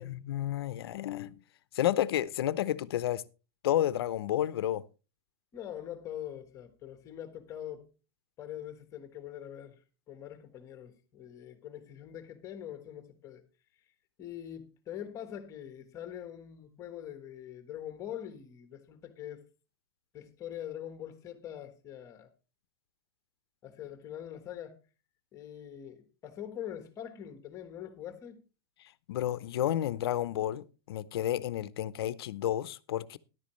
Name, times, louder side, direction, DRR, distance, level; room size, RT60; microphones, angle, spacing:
voice 1, 0.0-1.4 1.7-3.2 3.6-4.8 29.1-33.2, left 12 dB, 75° left, 0.7 m, -31 dB
voice 2, 5.5-7.9 8.4-9.8 10.1-13.4 14.2-19.5 20.1-22.3 23.6-24.8 25.3-28.4, left 10 dB, 25° left, 1.3 m, -43 dB
13.5 x 11.0 x 3.1 m
supercardioid pair, 160°, 13 cm